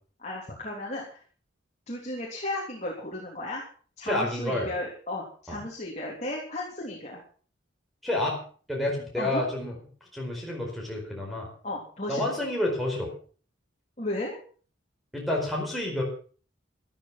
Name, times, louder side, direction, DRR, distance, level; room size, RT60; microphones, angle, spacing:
voice 1, 0.2-1.2 1.9-3.6 4.0-7.2 9.2-9.4 11.6-12.4 14.0-14.4, left 1 dB, 35° left, -2 dB, 3.2 m, -34 dB
voice 2, 4.0-4.7 5.5-5.6 8.0-8.4 8.7-9.7 10.1-11.5 12.1-13.1 15.1-16.0, left 1 dB, ahead, -3 dB, 4.6 m, -29 dB
13.5 x 12.0 x 6.0 m, 0.42 s
head